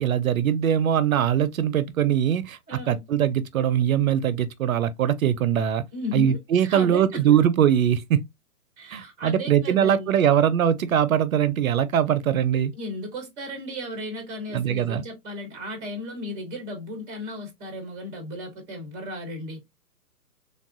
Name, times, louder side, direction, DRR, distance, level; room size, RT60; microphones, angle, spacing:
voice 1, 0.0-5.8 6.1-8.3 8.9-12.7 14.5-15.0, right 9 dB, 60° right, 0.5 m, -22 dB
voice 2, 2.7-3.0 5.9-6.4 6.6-7.2 8.8-10.4 12.8-19.6, left 1 dB, 10° right, 0.5 m, -35 dB
3.4 x 2.3 x 2.4 m
figure-of-eight pair, 130°, 47 cm